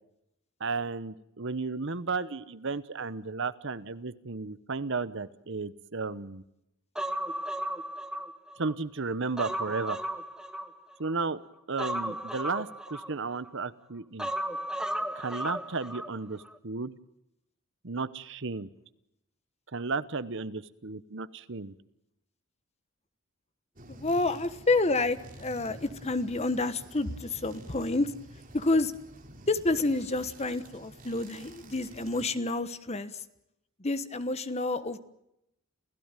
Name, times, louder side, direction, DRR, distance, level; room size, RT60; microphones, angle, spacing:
voice 1, 0.6-6.4 8.6-10.0 11.0-11.4 11.7-14.3 15.1-16.9 17.8-18.7 19.7-21.7, right 4 dB, 60° right, 15 dB, 1.0 m, -34 dB
Human voice, 7.0-8.7 9.1-11.1 11.8-13.5 14.2-16.1 16.4-16.5, right 1 dB, 5° right, 1.1 m, -35 dB
sound 1, 23.8-32.3, right 1 dB, 40° right, 3.1 m, -49 dB
voice 2, 23.9-28.1 28.5-28.9 29.5-33.1 33.8-35.0, left 2 dB, 30° left, 13 dB, 1.2 m, -29 dB
28.5 x 16.0 x 9.1 m, 0.83 s
head